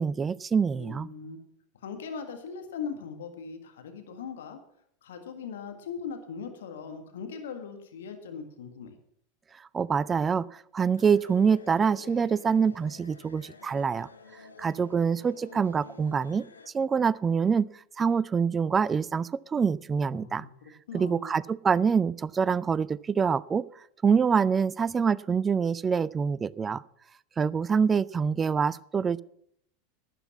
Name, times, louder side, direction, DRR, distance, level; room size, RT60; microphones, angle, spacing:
voice 1, 0.0-1.1 9.7-14.1 14.6-16.5 16.7-17.7 18.0-20.5 20.9-23.7 24.0-26.8 27.4-29.2, right 6 dB, 25° right, 21 dB, 0.5 m, -25 dB
voice 2, 0.7-1.4 1.8-4.6 5.0-9.0 20.0-21.4, left 6 dB, 75° left, 6 dB, 1.7 m, -40 dB
sound 1, 11.0-16.7, left 4 dB, 90° left, 1.1 m, -50 dB
12.0 x 9.3 x 7.2 m, 0.70 s
hypercardioid pair, 85°, 0 cm